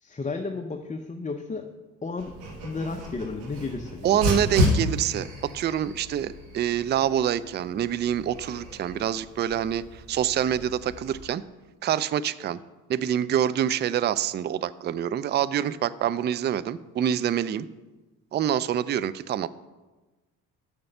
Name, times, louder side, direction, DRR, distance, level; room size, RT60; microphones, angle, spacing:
voice 1, 0.0-1.7 2.0-2.3 2.6-4.4, left 3 dB, 15° left, 4 dB, 0.7 m, -33 dB
Dog, 2.2-11.3, left 1 dB, 85° right, 1.6 m, -32 dB
voice 2, 4.0-11.4 11.8-12.6 12.9-17.7 18.3-19.5, right 10 dB, 25° right, 17 dB, 0.3 m, -26 dB
7.0 x 6.6 x 6.7 m, 1.2 s
hypercardioid pair, 55°, 45 cm